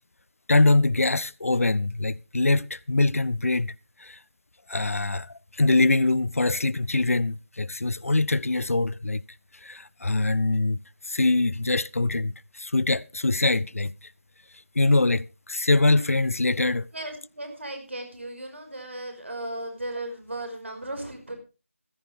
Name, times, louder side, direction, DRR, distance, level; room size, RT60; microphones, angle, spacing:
voice 1, 0.5-3.7 4.0-4.2 4.7-5.3 5.6-9.2 9.6-10.8 11.1-13.9 14.8-16.9, left 2 dB, 80° left, 0.6 m, -23 dB
voice 2, 16.9-21.4, right 1 dB, 60° right, 5.2 m, -36 dB
14.5 x 13.5 x 3.4 m
figure-of-eight pair, 180°, 8 cm